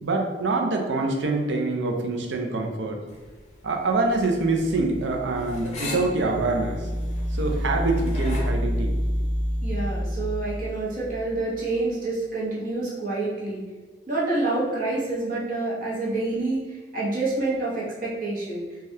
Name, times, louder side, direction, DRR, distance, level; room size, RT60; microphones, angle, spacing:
voice 1, 0.0-3.0 3.6-6.9 7.3-8.9, right 3 dB, 75° right, 2 dB, 0.5 m, -25 dB
sound 1, 3.1-8.5, left 2 dB, 40° left, 0.5 m, -39 dB
sound 2, 4.1-11.7, equal, 30° right, 0.6 m, -29 dB
voice 2, 9.6-13.6 14.1-18.6, right 2 dB, 50° right, -6 dB, 0.9 m, -27 dB
3.3 x 2.3 x 2.7 m, 1.4 s
head